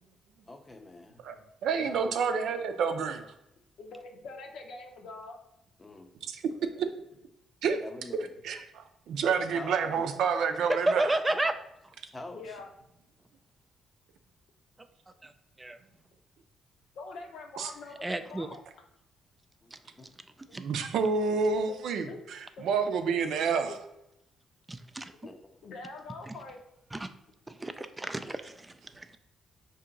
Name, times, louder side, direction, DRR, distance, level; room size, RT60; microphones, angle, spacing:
voice 1, 0.5-1.2 1.8-2.0 5.8-6.3 7.7-8.3 9.5-10.2 12.1-12.6 19.6-20.1 25.3-25.7, left 2 dB, 25° left, 6 dB, 0.6 m, -45 dB
voice 2, 1.6-3.3 6.2-6.4 6.8-6.9 7.6-7.8 8.4-8.6 9.1-11.1 17.6-17.7 20.5-23.7, right 5 dB, 75° right, 7 dB, 0.5 m, -29 dB
voice 3, 3.8-5.4 6.7-6.8 12.3-12.7 17.0-18.6 22.1-22.2 22.6-22.7 23.1-23.2 23.7-23.8 25.2-25.3 25.6-26.6 27.8-27.9, left 3 dB, 70° left, 3 dB, 0.8 m, -44 dB
voice 4, 10.9-11.5 15.2-15.3 15.6-15.8 18.0-18.5 19.7-19.8 20.5-20.6 24.7-25.1 26.3-26.4 26.9-27.1 27.5-29.2, right 2 dB, 15° right, 9 dB, 0.3 m, -32 dB
4.5 x 2.8 x 3.8 m, 0.84 s
cardioid pair, 90°, 0 cm